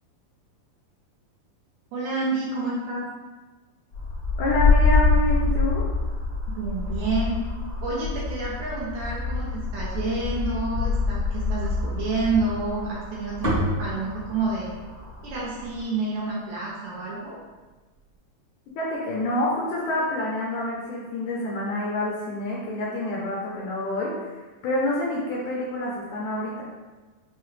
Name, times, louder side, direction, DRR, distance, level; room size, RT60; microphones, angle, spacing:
voice 1, 1.9-3.1 6.5-7.4 7.8-14.7 15.2-17.4, right 3 dB, 75° right, -5 dB, 1.8 m, -29 dB
sound 1, 3.9-15.8, left 4 dB, 55° left, 1.0 m, -26 dB
voice 2, 4.4-5.9 18.8-26.6, left 1 dB, 75° left, -4 dB, 1.9 m, -27 dB
sound 2, 12.3-16.6, equal, 45° right, 0.9 m, -31 dB
5.6 x 2.2 x 3.1 m, 1.3 s
omnidirectional pair, 3.9 m